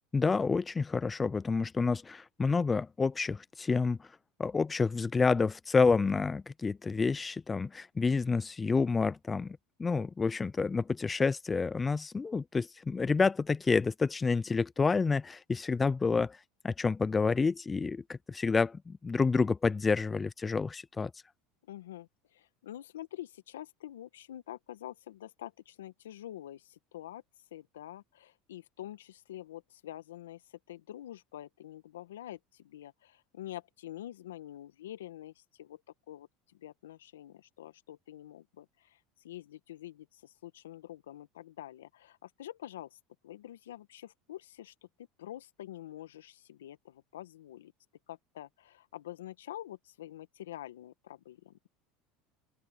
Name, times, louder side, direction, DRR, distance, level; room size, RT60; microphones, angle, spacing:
voice 1, 0.1-4.1 4.4-16.4 16.6-21.1, left 4 dB, 20° left, 0.6 m, -29 dB
voice 2, 21.7-27.2 27.5-30.4 30.7-35.8 36.1-39.0 39.2-43.0 43.2-47.7 48.1-51.6, left 13 dB, 85° left, 1.7 m, -46 dB
open air
hypercardioid pair, 85°, 0 cm